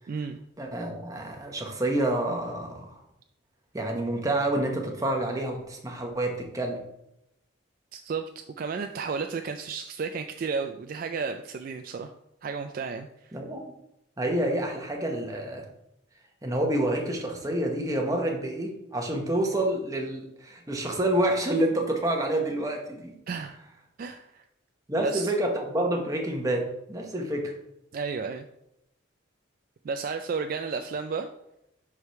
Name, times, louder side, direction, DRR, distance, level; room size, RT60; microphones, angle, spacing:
voice 1, 0.1-0.4 7.9-8.2 8.6-12.1 12.4-13.4 23.3-23.6 24.0-24.4 25.0-25.3 27.9-28.4 29.8-31.3, right 5 dB, 45° right, 6 dB, 0.3 m, -32 dB
voice 2, 0.6-3.0 3.7-6.8 13.3-13.7 14.2-15.7 16.4-23.1 24.9-27.5, right 1 dB, 15° right, 1 dB, 1.0 m, -28 dB
4.9 x 4.8 x 5.6 m, 0.83 s
head